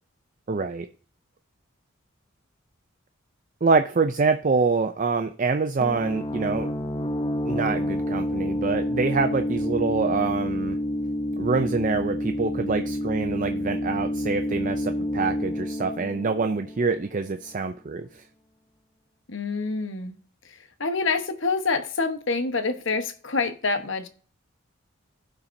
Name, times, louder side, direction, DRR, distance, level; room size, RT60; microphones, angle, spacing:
voice 1, 0.5-0.9 3.6-6.7 7.5-10.8 11.4-18.2, right 4 dB, 40° right, 0.4 m, -25 dB
sound 1, 5.8-17.3, left 1 dB, 25° left, 0.7 m, -29 dB
voice 2, 19.3-20.2 20.4-24.1, left 4 dB, 65° left, 1.1 m, -27 dB
16.5 x 5.8 x 2.7 m
head